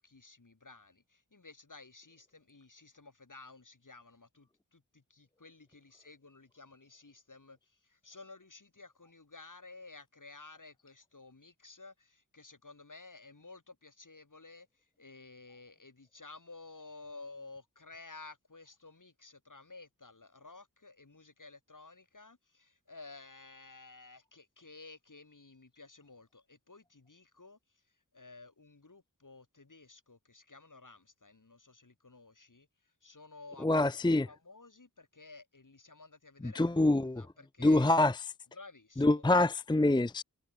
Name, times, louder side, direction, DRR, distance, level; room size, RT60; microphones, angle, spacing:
voice 1, 0.0-27.6 28.1-33.9 34.2-37.9 38.5-39.2, left 3 dB, 60° left, 5.3 m, -53 dB
voice 2, 33.6-34.3 36.4-37.2 37.6-38.1 39.0-40.2, left 2 dB, 10° left, 0.6 m, -25 dB
wide cardioid pair, 60°, 36 cm